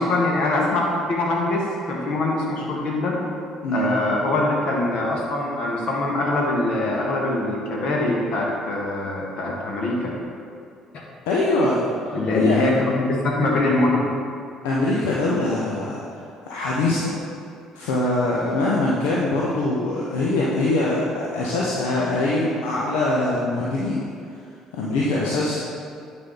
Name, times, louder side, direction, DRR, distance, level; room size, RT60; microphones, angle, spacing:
voice 1, 0.0-3.2 3.7-10.1 10.9-11.0 12.1-14.1, left 2 dB, 55° left, -2 dB, 1.7 m, -23 dB
voice 2, 3.6-4.0 11.3-11.9 12.3-12.7 14.6-16.2 16.4-17.1 17.7-24.0 24.7-25.6, left 2 dB, 70° left, -5 dB, 0.9 m, -23 dB
9.5 x 5.2 x 4.0 m, 2.4 s
figure-of-eight pair, 50°, 2 cm